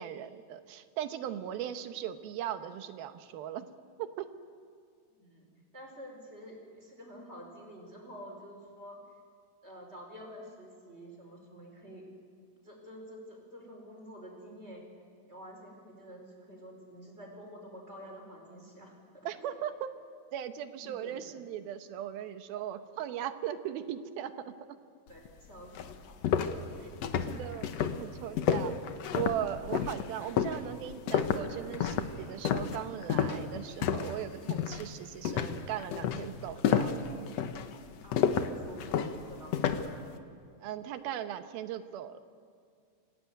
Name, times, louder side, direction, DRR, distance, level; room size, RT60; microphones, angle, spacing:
voice 1, 0.0-3.7 4.0-4.3 19.3-19.9 20.3-24.5 26.8-26.9 27.3-28.8 29.1-37.0 40.6-42.2, right 10 dB, 85° right, 9 dB, 2.9 m, -38 dB
voice 2, 5.1-9.0 9.6-12.1 12.6-14.8 15.2-19.5 20.7-21.4 25.1-26.2 38.0-40.2, equal, 15° right, 0 dB, 5.2 m, -49 dB
sound 1, 25.3-25.4 25.7-34.2 34.5-34.9 35.2-40.0, left 8 dB, 70° left, 1.6 m, -30 dB
27.0 x 17.5 x 9.1 m, 2.2 s
omnidirectional pair, 4.2 m